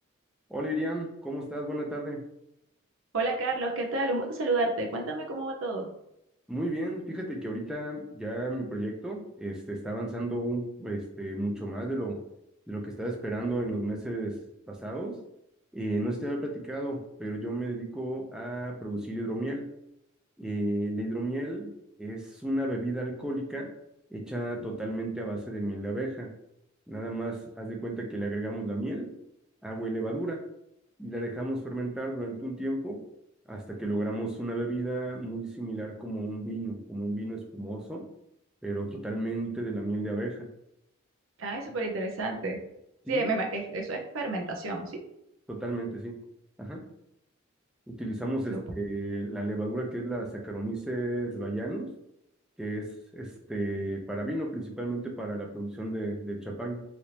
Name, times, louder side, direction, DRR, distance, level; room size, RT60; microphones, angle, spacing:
voice 1, 0.5-2.2 6.5-12.2 12.7-14.4 14.7-15.2 15.7-19.7 20.4-21.7 22.0-23.7 24.1-26.3 26.9-29.1 29.6-30.4 31.0-33.0 33.5-38.1 38.6-40.5 43.0-43.2 45.5-46.2 46.6-46.8 47.9-51.9 52.6-56.8, right 1 dB, 5° right, -1 dB, 0.4 m, -33 dB
voice 2, 3.1-5.9 41.4-42.6 43.1-45.0 48.5-48.6, right 2 dB, 70° right, 1 dB, 0.6 m, -30 dB
3.3 x 2.6 x 2.9 m, 0.82 s
head